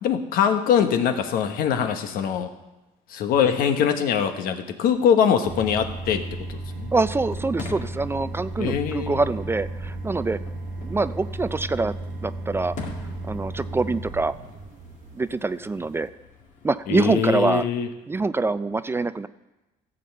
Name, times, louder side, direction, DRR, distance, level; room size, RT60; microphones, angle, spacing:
voice 1, 0.0-2.5 3.1-6.9 8.6-9.2 16.9-17.9, left 8 dB, 75° left, 7 dB, 1.2 m, -23 dB
sound 1, 5.4-16.1, right 2 dB, 60° right, 1.0 m, -35 dB
voice 2, 6.9-10.4 10.8-11.9 12.2-12.8 13.2-14.3 15.2-16.1 16.6-17.7 18.1-19.3, right 3 dB, 15° right, 14 dB, 0.4 m, -25 dB
Fireworks, 7.2-17.1, left 4 dB, 60° left, 2.2 m, -44 dB
15.0 x 5.2 x 7.6 m, 1.0 s
cardioid pair, 110°, 15 cm